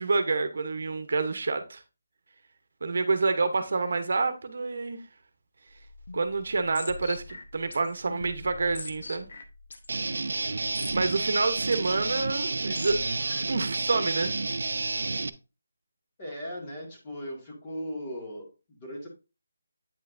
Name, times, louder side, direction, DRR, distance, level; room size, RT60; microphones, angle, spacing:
voice 1, 0.0-1.8 2.8-5.0 6.1-9.3 10.9-13.0 13.5-14.3, right 3 dB, 60° right, 0.9 m, -28 dB
sound 1, 5.7-13.6, left 2 dB, 55° left, 1.1 m, -43 dB
Guitar, 9.9-15.3, right 3 dB, 75° right, 0.6 m, -30 dB
voice 2, 10.4-10.7 16.2-19.1, equal, 20° left, 1.9 m, -38 dB
8.7 x 5.6 x 2.6 m
hypercardioid pair, 170°, 0 cm